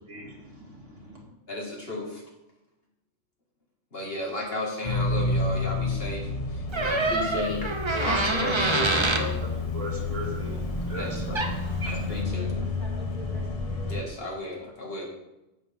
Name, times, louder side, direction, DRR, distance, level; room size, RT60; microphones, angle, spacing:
voice 1, 0.1-1.2 6.9-7.0 7.9-8.6 9.4-9.5 9.7-11.2 11.8-12.0, right 1 dB, 70° right, -2 dB, 2.6 m, -39 dB
voice 2, 1.5-2.2 3.9-7.7 8.0-9.4 10.9-11.5 11.9-12.5 13.9-15.1, left 1 dB, 50° left, -2 dB, 2.3 m, -33 dB
sound 1, 4.8-14.0, left 3 dB, 30° left, 0.8 m, -30 dB
Door, 6.7-9.3 11.1-11.2 11.3-11.7, right 2 dB, 25° right, 0.8 m, -26 dB
voice 3, 7.8-8.1 12.1-14.4, equal, 70° left, -4 dB, 3.2 m, -46 dB
10.5 x 8.1 x 3.6 m, 0.98 s
omnidirectional pair, 1.3 m